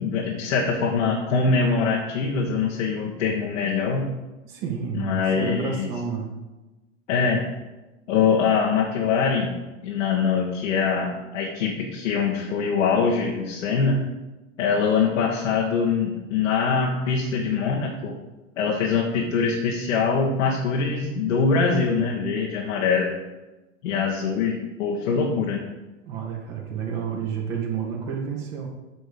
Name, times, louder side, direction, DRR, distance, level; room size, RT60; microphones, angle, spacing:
voice 1, 0.0-4.1 4.9-5.9 7.1-7.4 8.1-9.6 9.8-14.0 14.6-18.2 18.6-23.1 23.8-25.6, left 5 dB, 75° left, -1 dB, 1.4 m, -23 dB
voice 2, 4.4-6.3 26.1-28.7, right 6 dB, 55° right, -1 dB, 2.4 m, -30 dB
8.9 x 5.3 x 5.1 m, 1.1 s
hypercardioid pair, 95°, 38 cm